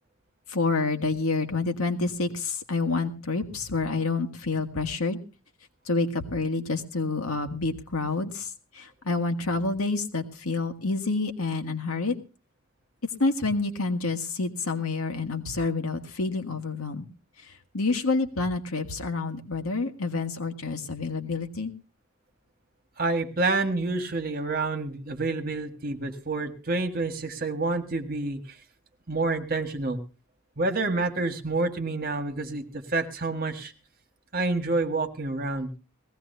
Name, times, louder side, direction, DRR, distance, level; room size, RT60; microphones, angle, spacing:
voice 1, 0.5-5.2 5.9-12.2 13.2-17.1 17.4-21.7, left 3 dB, 90° left, 5 dB, 1.8 m, -28 dB
voice 2, 23.0-28.4 29.1-30.0 30.6-33.7 34.3-35.7, right 3 dB, 45° right, 6 dB, 1.7 m, -28 dB
20.0 x 16.0 x 2.7 m, 0.33 s
head